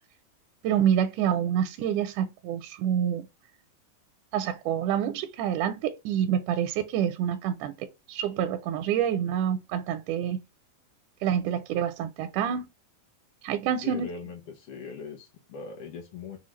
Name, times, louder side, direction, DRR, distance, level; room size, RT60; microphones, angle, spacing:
voice 1, 0.6-3.3 4.3-10.4 11.2-12.7 13.4-14.1, right 9 dB, 80° right, 1.9 m, -27 dB
voice 2, 13.8-16.4, left 5 dB, 90° left, 1.2 m, -40 dB
6.2 x 2.3 x 3.0 m
omnidirectional pair, 3.9 m